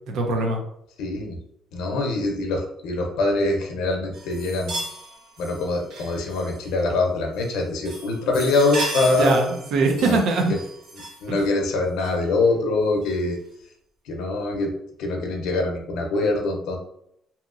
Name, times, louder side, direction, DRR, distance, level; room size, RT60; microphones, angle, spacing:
voice 1, 0.1-0.6 9.2-10.5 11.3-11.4, right 3 dB, 65° right, 2 dB, 0.6 m, -22 dB
voice 2, 1.0-1.4 1.7-4.8 5.4-9.5 10.0-10.2 10.5-10.6 11.2-13.4 14.1-14.7 15.0-16.8, left 2 dB, 90° left, 2 dB, 0.6 m, -24 dB
sound 1, 4.1-6.8 7.3-7.6 7.8-11.3 12.0-12.1 13.0-13.2, right 1 dB, 85° right, 1.1 m, -35 dB
2.8 x 2.8 x 2.4 m, 0.74 s
cardioid pair, 175°, 0 cm